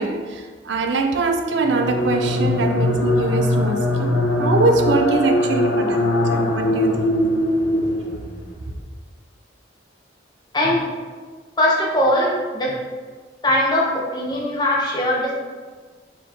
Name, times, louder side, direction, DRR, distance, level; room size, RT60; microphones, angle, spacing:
voice 1, 0.0-7.1, right 3 dB, 75° right, 4 dB, 0.5 m, -23 dB
sound 1, 1.5-8.4, left 1 dB, 80° left, 0.7 m, -21 dB
voice 2, 10.5-10.9 11.6-12.8 13.4-15.3, left 1 dB, 20° left, -4 dB, 0.7 m, -20 dB
4.3 x 3.0 x 3.6 m, 1.5 s
head